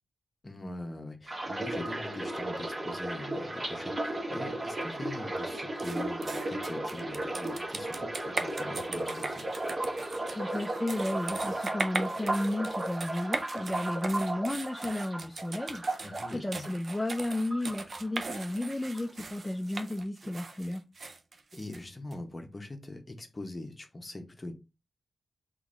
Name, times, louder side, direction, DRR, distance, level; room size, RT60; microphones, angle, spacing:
voice 1, 0.4-9.5 16.0-16.7 21.5-24.5, left 2 dB, 30° left, 0.9 m, -42 dB
sound 1, 1.3-17.2 17.5-18.4 18.7-19.0, right 1 dB, 30° right, 1.0 m, -35 dB
sound 2, 5.8-22.2, right 3 dB, 55° right, 0.5 m, -39 dB
voice 2, 10.3-20.8, left 1 dB, 10° left, 0.5 m, -33 dB
3.9 x 3.0 x 3.7 m
wide cardioid pair, 105°, 0 cm